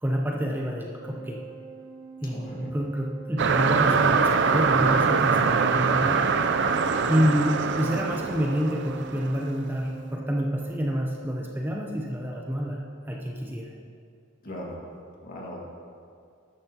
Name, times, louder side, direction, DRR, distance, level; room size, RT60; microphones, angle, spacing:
voice 1, 0.0-1.4 2.2-6.3 7.1-13.7, equal, 10° right, -1 dB, 0.7 m, -28 dB
Organ, 0.9-11.7, right 5 dB, 75° right, 2.6 m, -43 dB
voice 2, 2.3-2.8 7.0-7.3 14.4-14.9 15.2-15.8, equal, 45° left, -2 dB, 2.0 m, -39 dB
sound 1, 3.4-9.4, right 5 dB, 60° right, 0.5 m, -23 dB
13.0 x 10.5 x 2.9 m, 2.3 s
head